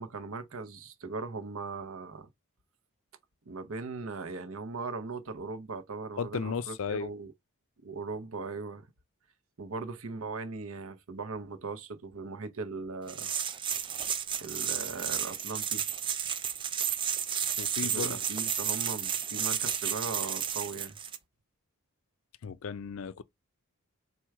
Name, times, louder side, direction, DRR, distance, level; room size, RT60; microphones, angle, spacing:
voice 1, 0.0-2.3 3.4-7.3 7.8-8.9 9.6-13.3 14.4-15.9 17.8-21.0, right 4 dB, 65° right, 0.7 m, -39 dB
voice 2, 6.2-7.1 17.6-18.2 22.4-23.2, left 5 dB, 65° left, 0.4 m, -35 dB
sound 1, 13.1-21.2, right 8 dB, 20° right, 0.3 m, -32 dB
4.4 x 2.3 x 4.6 m
head